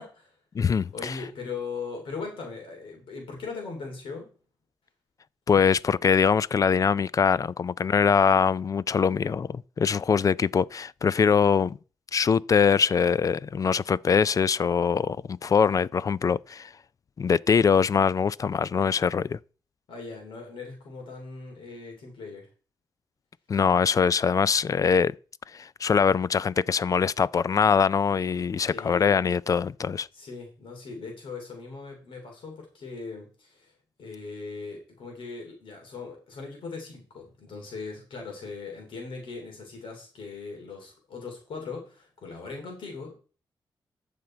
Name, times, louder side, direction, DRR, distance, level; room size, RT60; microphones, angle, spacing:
voice 1, 0.0-4.3 19.9-22.5 28.7-29.2 30.1-33.7 34.0-43.1, left 4 dB, 85° left, 3.2 m, -39 dB
voice 2, 0.5-1.2 5.5-11.8 12.1-16.7 17.2-19.4 23.5-25.1 25.5-30.1, left 6 dB, 40° left, 0.3 m, -23 dB
13.5 x 5.2 x 4.4 m
cardioid pair, 95°, 9 cm